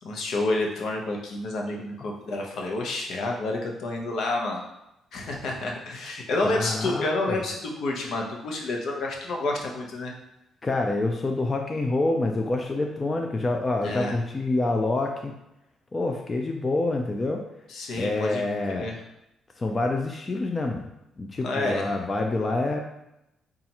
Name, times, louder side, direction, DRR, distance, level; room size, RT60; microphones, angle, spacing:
voice 1, 0.0-4.6 5.1-10.1 13.8-14.1 17.7-18.9 21.4-21.8, left 2 dB, 70° left, 1 dB, 0.8 m, -29 dB
voice 2, 6.4-7.4 10.6-15.3 15.9-17.4 17.9-18.9 19.6-20.9 21.2-22.8, left 2 dB, 30° left, 2 dB, 0.4 m, -27 dB
5.1 x 2.4 x 2.9 m, 0.85 s
cardioid pair, 90°, 0 cm